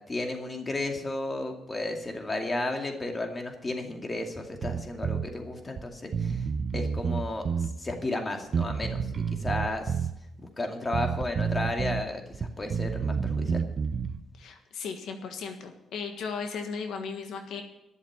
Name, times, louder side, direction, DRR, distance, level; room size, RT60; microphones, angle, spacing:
voice 1, 0.1-6.4 6.7-7.5 7.8-9.9 10.6-13.6, left 2 dB, 25° left, 3 dB, 2.4 m, -33 dB
Bass guitar, 4.6-5.3 5.8-5.9 6.1-7.7 8.5-10.1 10.9-12.0 12.3-14.2, right 6 dB, 50° right, 0.8 m, -29 dB
voice 2, 14.4-17.6, left 5 dB, 75° left, 5 dB, 1.5 m, -36 dB
12.0 x 7.2 x 9.8 m, 0.87 s
cardioid pair, 90°, 0 cm